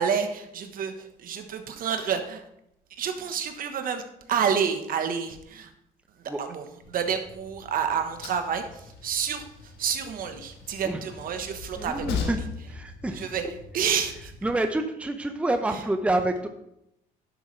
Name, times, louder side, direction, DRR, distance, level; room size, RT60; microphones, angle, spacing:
voice 1, 0.0-2.4 2.9-4.0 4.3-5.7 6.2-12.4 13.1-13.4 13.7-14.3 15.7-15.8, right 7 dB, 55° right, 7 dB, 1.1 m, -29 dB
Train, 6.8-14.6, left 5 dB, 85° left, 1.5 m, -39 dB
voice 2, 11.8-12.4 12.7-13.3 14.4-16.5, right 2 dB, 5° right, 6 dB, 0.7 m, -27 dB
11.0 x 7.3 x 3.2 m, 0.80 s
cardioid pair, 110°, 17 cm